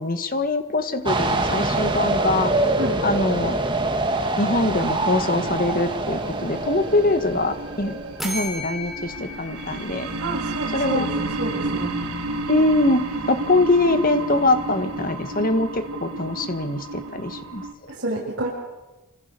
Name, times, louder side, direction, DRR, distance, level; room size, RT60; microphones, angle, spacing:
voice 1, 0.0-2.5 3.0-3.6 4.4-8.0 8.2-10.1 10.7-11.1 12.5-17.6, left 2 dB, 40° left, 9 dB, 1.8 m, -23 dB
sound 1, 1.1-8.4, right 2 dB, 20° right, 2.1 m, -25 dB
sound 2, 4.8-17.7, right 2 dB, 85° right, 4.9 m, -32 dB
sound 3, 8.2-10.9, left 1 dB, ahead, 5.0 m, -35 dB
voice 2, 10.2-11.9 17.9-18.5, right 2 dB, 55° right, -4 dB, 6.5 m, -29 dB
27.0 x 27.0 x 7.0 m, 1.1 s
head